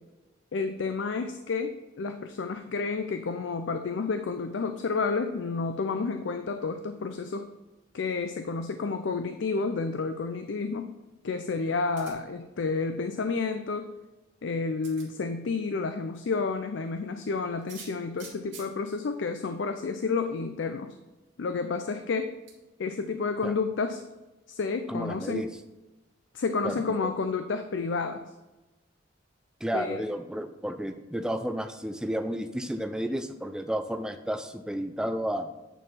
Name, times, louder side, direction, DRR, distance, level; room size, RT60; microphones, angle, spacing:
voice 1, 0.5-7.5 7.9-10.9 11.2-13.9 14.4-20.9 21.4-22.3 22.8-24.0 24.5-25.5 26.3-28.2 29.7-30.0, left 4 dB, 65° left, 7 dB, 0.4 m, -30 dB
sound 1, 12.0-12.4 14.0-14.1 14.8-15.1 17.6-18.7 19.8-19.9 20.2-20.3 22.5-22.6, right 5 dB, 65° right, 2.1 m, -46 dB
voice 2, 24.9-25.5 26.6-27.0 29.6-35.5, equal, 5° right, 8 dB, 0.4 m, -32 dB
9.0 x 4.4 x 4.1 m, 1.1 s
head